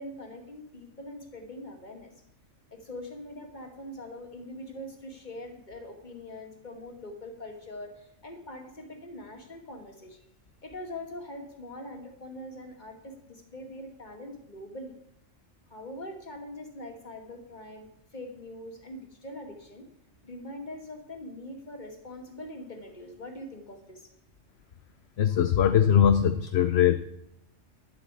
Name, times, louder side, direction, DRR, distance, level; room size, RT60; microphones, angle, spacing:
voice 1, 0.0-2.1 2.7-10.3 10.6-14.9 15.7-19.9 20.2-24.1, left 1 dB, 35° left, 4 dB, 2.2 m, -43 dB
voice 2, 25.2-27.0, left 9 dB, 60° left, 10 dB, 0.9 m, -21 dB
11.0 x 8.1 x 8.2 m, 0.74 s
omnidirectional pair, 1.3 m